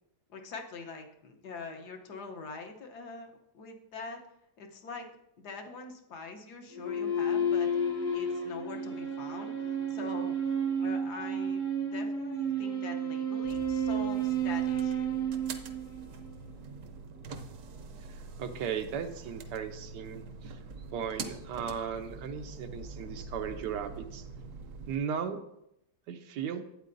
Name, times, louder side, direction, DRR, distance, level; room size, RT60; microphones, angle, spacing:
voice 1, 0.3-4.2 4.6-5.1 5.4-7.7 8.1-10.4 10.8-15.1, left 4 dB, 70° left, 3 dB, 1.5 m, -43 dB
sound 1, 6.7-16.4, right 3 dB, 35° left, 0.8 m, -31 dB
sound 2, 13.4-25.0, right 3 dB, 60° right, 0.9 m, -45 dB
voice 2, 18.0-20.6 20.9-24.3 24.9-25.4 26.1-26.6, right 7 dB, 90° right, 8 dB, 1.3 m, -36 dB
12.0 x 8.4 x 2.6 m, 0.82 s
omnidirectional pair, 1.8 m